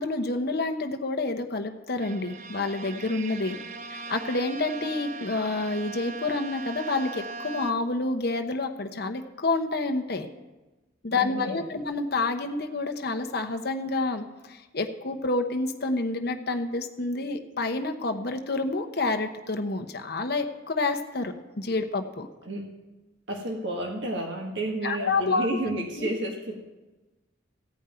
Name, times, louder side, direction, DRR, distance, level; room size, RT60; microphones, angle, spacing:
voice 1, 0.0-3.6 3.9-10.3 11.0-22.3 24.8-25.5 26.0-26.1, left 3 dB, 55° left, 6 dB, 0.9 m, -28 dB
Bowed string instrument, 2.0-8.1, right 3 dB, 40° right, 0.4 m, -39 dB
voice 2, 11.1-11.8 22.4-22.7 23.3-26.6, right 1 dB, 65° right, 1 dB, 1.5 m, -31 dB
15.5 x 5.3 x 9.0 m, 1.1 s
head